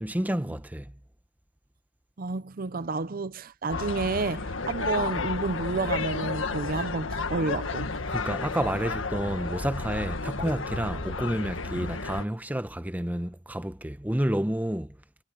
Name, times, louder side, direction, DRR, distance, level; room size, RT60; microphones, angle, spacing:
voice 1, 0.0-0.9 8.1-15.0, right 1 dB, 10° right, 0.9 m, -30 dB
voice 2, 2.2-7.9, right 3 dB, 50° right, 0.6 m, -30 dB
sound 1, 3.7-12.2, left 3 dB, 90° left, 1.6 m, -32 dB
head